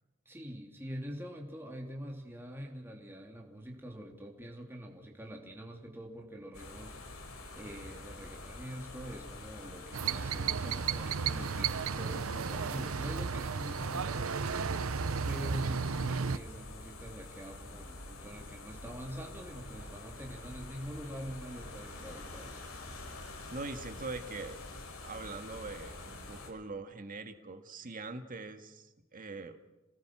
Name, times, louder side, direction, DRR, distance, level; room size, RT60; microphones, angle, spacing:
voice 1, 0.2-14.8 15.3-22.7, equal, 10° right, 0 dB, 3.1 m, -45 dB
sound 1, 6.5-26.5, left 2 dB, 85° left, 5.7 m, -47 dB
sound 2, 9.9-16.4, right 5 dB, 75° right, 0.7 m, -33 dB
voice 2, 23.5-24.6 25.0-29.6, right 3 dB, 40° right, 7 dB, 1.9 m, -42 dB
29.5 x 19.0 x 6.3 m, 1.0 s
head